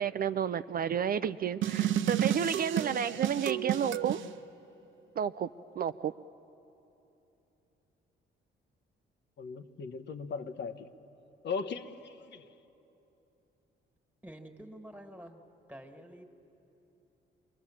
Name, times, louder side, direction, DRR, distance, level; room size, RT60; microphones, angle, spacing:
voice 1, 0.0-4.2 5.2-5.5 5.8-6.1, right 8 dB, 50° right, 0.5 m, -31 dB
sound 1, 1.6-4.3, right 11 dB, 80° right, 0.8 m, -31 dB
voice 2, 9.4-10.9 11.4-12.4, left 5 dB, 60° left, 1.2 m, -38 dB
voice 3, 14.2-15.4 15.7-16.2, right 1 dB, 10° right, 2.1 m, -48 dB
27.0 x 22.5 x 7.4 m
cardioid pair, 90°, 20 cm